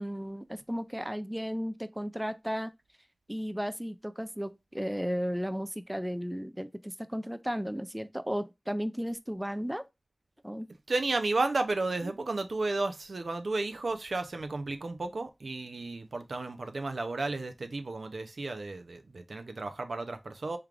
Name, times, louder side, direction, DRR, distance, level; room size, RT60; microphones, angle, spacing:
voice 1, 0.0-2.7 3.3-9.8 10.4-10.7 12.0-12.1, equal, 10° right, 0.3 m, -34 dB
voice 2, 10.9-20.6, right 3 dB, 85° right, 0.4 m, -33 dB
3.6 x 3.2 x 2.3 m
wide cardioid pair, 45°, 0 cm